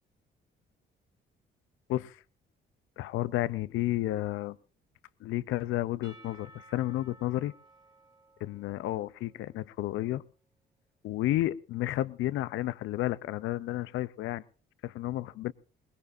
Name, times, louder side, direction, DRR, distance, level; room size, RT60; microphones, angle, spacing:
voice 1, 1.9-2.2 3.0-4.6 5.2-7.5 8.4-10.2 11.0-14.4 14.8-15.5, left 15 dB, 85° left, 16 dB, 0.7 m, -31 dB
Percussion / Church bell, 6.0-9.9, right 1 dB, 20° right, 2.4 m, -57 dB
21.5 x 19.5 x 2.7 m, 0.37 s
cardioid pair, 90°, 20 cm